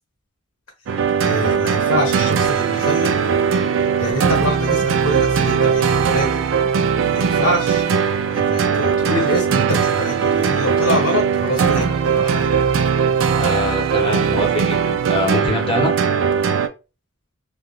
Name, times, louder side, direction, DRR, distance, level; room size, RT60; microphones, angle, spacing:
sound 1, 0.9-16.7, right 6 dB, 60° right, 0.4 m, -19 dB
voice 1, 1.2-3.3 4.0-6.5 7.1-7.9 8.3-12.5, left 1 dB, 80° left, -1 dB, 1.0 m, -25 dB
voice 2, 13.3-15.9, left 2 dB, 25° left, 1 dB, 0.8 m, -24 dB
3.4 x 2.3 x 2.4 m, 0.29 s
head